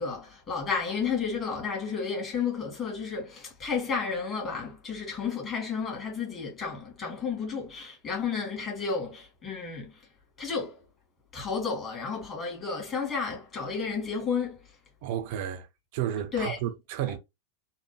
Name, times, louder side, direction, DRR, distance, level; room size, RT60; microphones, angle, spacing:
voice 1, 0.0-10.0 10.4-10.8 11.3-14.6 16.3-16.6, left 5 dB, 25° left, 1.6 m, -32 dB
voice 2, 15.0-15.7 15.9-17.2, right 10 dB, 50° right, 0.5 m, -32 dB
3.3 x 2.2 x 3.0 m
figure-of-eight pair, 90°, 0 cm